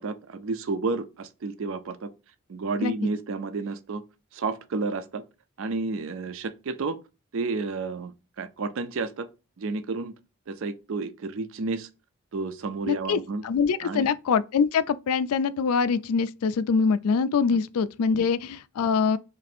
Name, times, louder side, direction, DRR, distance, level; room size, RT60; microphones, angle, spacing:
voice 1, 0.0-2.1 2.5-4.0 4.3-5.2 5.6-7.0 7.3-9.3 9.6-10.1 10.5-11.9 12.3-13.4 13.8-14.1 17.5-17.6 18.1-18.3, right 3 dB, 60° right, 0.4 m, -31 dB
voice 2, 12.9-13.2 13.4-19.2, left 5 dB, 75° left, 0.3 m, -24 dB
3.2 x 2.6 x 4.1 m
head